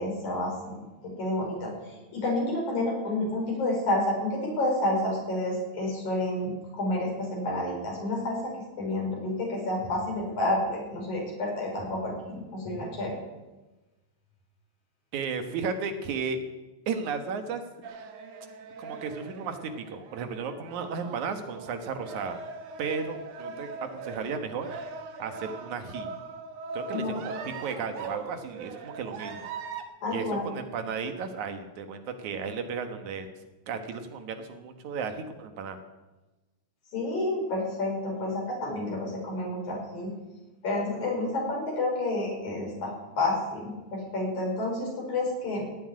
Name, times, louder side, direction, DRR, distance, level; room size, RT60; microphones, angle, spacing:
voice 1, 0.0-1.7 2.1-13.1 26.9-27.1 30.0-30.4 36.9-40.1 40.6-45.7, left 1 dB, 85° left, -1 dB, 6.4 m, -30 dB
voice 2, 15.1-16.4 16.9-17.6 17.9-18.1 18.8-22.4 22.8-24.9 25.2-26.1 26.7-29.5 30.1-33.3 33.7-35.8, right 5 dB, 85° right, 7 dB, 2.8 m, -34 dB
sound 1, 17.8-29.8, right 4 dB, 65° right, 2.4 m, -40 dB
17.5 x 7.6 x 9.7 m, 1.1 s
omnidirectional pair, 3.3 m